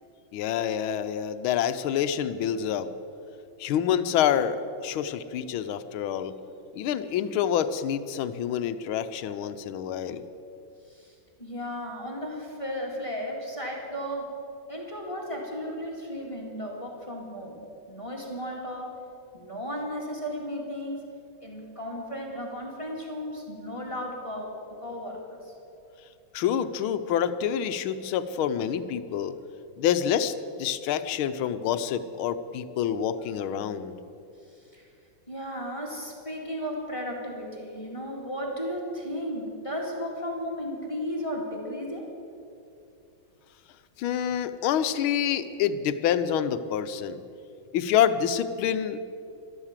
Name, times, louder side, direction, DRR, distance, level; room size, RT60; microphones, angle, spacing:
voice 1, 0.3-2.9 3.6-6.3 6.7-10.2 26.3-29.4 29.8-34.0 44.0-47.2 47.7-49.0, left 9 dB, 85° left, 12 dB, 1.5 m, -27 dB
voice 2, 10.9-14.4 14.7-17.6 17.9-19.0 19.3-21.0 21.4-25.5 34.5-34.9 35.3-42.1, equal, 15° left, -2 dB, 2.1 m, -35 dB
13.0 x 12.5 x 7.4 m, 2.7 s
omnidirectional pair, 2.2 m